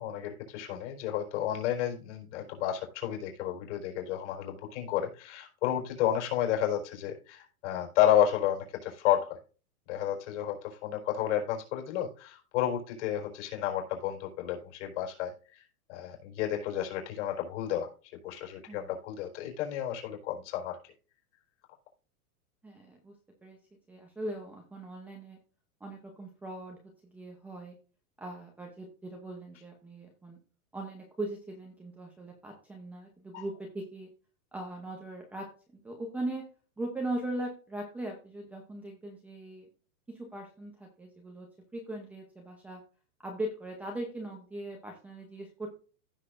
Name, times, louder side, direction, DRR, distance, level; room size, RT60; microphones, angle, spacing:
voice 1, 0.0-9.4 9.9-15.6 15.9-17.9 18.2-20.8 33.3-33.4, left 10 dB, 50° left, 2 dB, 4.3 m, -31 dB
voice 2, 22.6-23.1 23.4-23.6 23.9-25.4 25.8-27.8 28.2-30.4 30.7-34.1 34.5-35.5 35.8-36.4 36.8-39.7 40.1-41.5 41.7-42.8 43.2-45.7, right 1 dB, 5° right, 0 dB, 0.7 m, -39 dB
15.5 x 6.5 x 2.5 m, 0.37 s
supercardioid pair, 170°, 44 cm